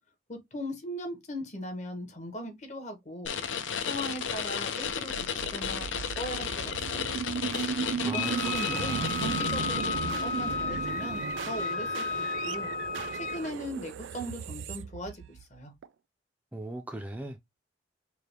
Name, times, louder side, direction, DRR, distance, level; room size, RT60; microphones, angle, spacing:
voice 1, 0.3-3.3 3.8-7.2 8.0-12.7 13.1-15.7, equal, 40° left, 1.0 m, -39 dB
sound 1, 3.2-10.5, left 7 dB, 80° left, 0.6 m, -33 dB
sound 2, 4.8-15.9, right 7 dB, 80° right, 0.3 m, -36 dB
voice 2, 8.0-9.2 16.5-17.4, right 1 dB, 10° right, 0.4 m, -39 dB
Wind instrument woodwind instrument, 8.1-13.5, left 4 dB, 65° left, 1.5 m, -33 dB
4.7 x 2.2 x 3.3 m
head